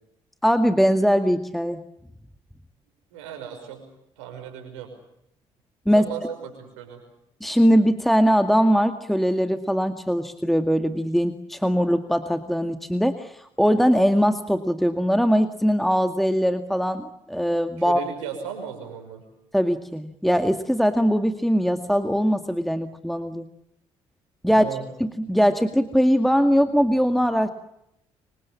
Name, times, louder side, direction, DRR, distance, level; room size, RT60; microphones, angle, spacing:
voice 1, 0.4-1.8 5.9-6.1 7.4-18.0 19.5-23.5 24.4-27.5, equal, ahead, 8 dB, 2.0 m, -21 dB
voice 2, 3.1-3.8 4.2-4.9 5.9-7.0 17.8-19.2 24.5-24.9, right 8 dB, 85° right, 6 dB, 5.9 m, -35 dB
28.0 x 24.0 x 7.1 m, 0.82 s
hypercardioid pair, 50°, 15 cm